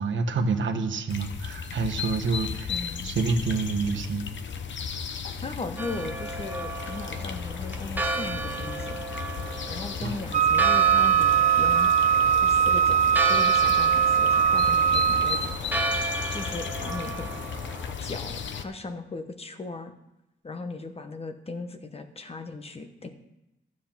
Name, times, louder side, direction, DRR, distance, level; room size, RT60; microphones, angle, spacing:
voice 1, 0.0-4.3 10.0-10.2, right 4 dB, 75° right, 7 dB, 1.1 m, -28 dB
sound 1, 1.1-18.6, left 6 dB, 70° left, 0.9 m, -35 dB
voice 2, 2.7-3.1 5.4-9.0 9.7-11.9 12.4-17.3 18.0-19.9 20.4-23.1, left 3 dB, 30° left, 8 dB, 1.0 m, -38 dB
Church bell, 5.8-17.9, right 2 dB, 10° right, 1.0 m, -34 dB
Wind instrument woodwind instrument, 10.3-15.5, right 9 dB, 35° right, 0.4 m, -21 dB
12.5 x 7.5 x 5.9 m, 0.92 s
wide cardioid pair, 145°, 20 cm